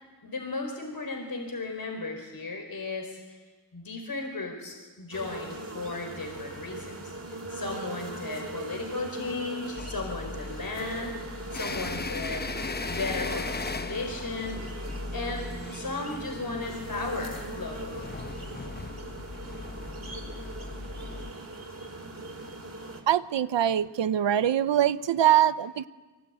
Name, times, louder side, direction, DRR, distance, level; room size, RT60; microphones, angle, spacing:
voice 1, 0.2-3.4 3.7-11.1 11.5-12.5 12.9-14.6 15.1-18.1, left 3 dB, 55° left, 3 dB, 4.6 m, -35 dB
sound 1, 5.1-23.0, right 2 dB, 40° right, 5.1 m, -40 dB
sound 2, 9.8-21.3, left 3 dB, 25° left, 0.8 m, -38 dB
voice 2, 23.1-25.9, right 10 dB, 85° right, 15 dB, 0.8 m, -23 dB
24.0 x 23.0 x 9.2 m, 1.3 s
cardioid pair, 70°, 43 cm